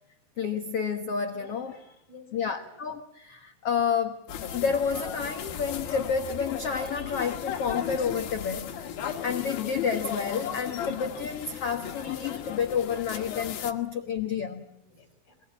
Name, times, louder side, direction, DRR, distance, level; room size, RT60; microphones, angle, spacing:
voice 1, 0.4-1.8 2.3-8.7 9.2-14.7, left 6 dB, 80° left, 6 dB, 1.3 m, -30 dB
voice 2, 1.3-2.7 6.9-7.2 8.2-8.4 14.3-14.5 14.8-15.4, left 3 dB, 30° left, 5 dB, 6.3 m, -53 dB
sound 1, 4.3-13.7, left 9 dB, 65° left, 3.5 m, -36 dB
28.0 x 20.5 x 8.9 m, 0.79 s
omnidirectional pair, 4.9 m